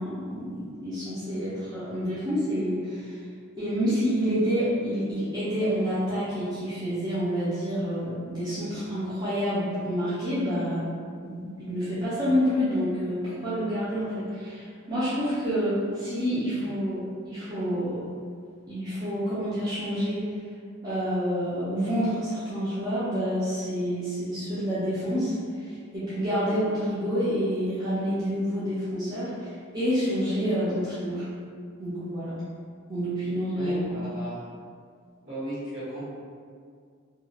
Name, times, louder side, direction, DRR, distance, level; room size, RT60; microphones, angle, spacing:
voice 1, 0.0-3.2 3.6-10.9 11.2-18.0 18.7-20.3 20.8-25.4 25.7-31.3 31.8-32.4 32.9-34.0, equal, 20° right, -13 dB, 0.5 m, -28 dB
voice 2, 33.3-34.4 35.2-36.1, right 1 dB, 60° right, -10 dB, 1.3 m, -36 dB
2.4 x 2.3 x 2.9 m, 2.1 s
head